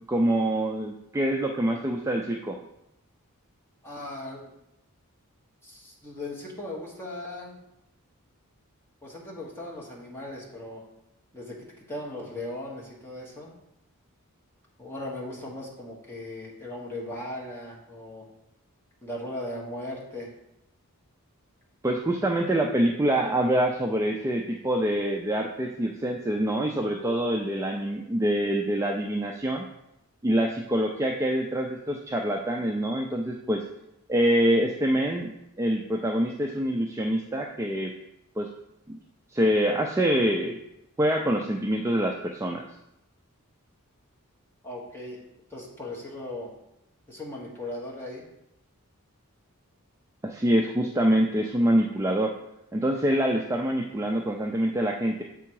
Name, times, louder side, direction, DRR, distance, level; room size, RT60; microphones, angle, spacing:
voice 1, 0.1-2.6 21.8-29.6 30.2-33.6 34.1-37.9 38.4-38.5 38.9-39.0 39.3-40.6 41.0-42.6 50.2-52.3 52.7-55.2, right 1 dB, 15° right, 1 dB, 0.3 m, -25 dB
voice 2, 3.8-4.5 5.6-7.6 9.0-10.8 11.3-13.5 14.8-18.3 19.0-20.3 44.6-45.2 45.5-46.5 47.1-48.2, left 1 dB, 10° left, -4 dB, 1.3 m, -38 dB
7.0 x 3.7 x 4.6 m, 0.84 s
head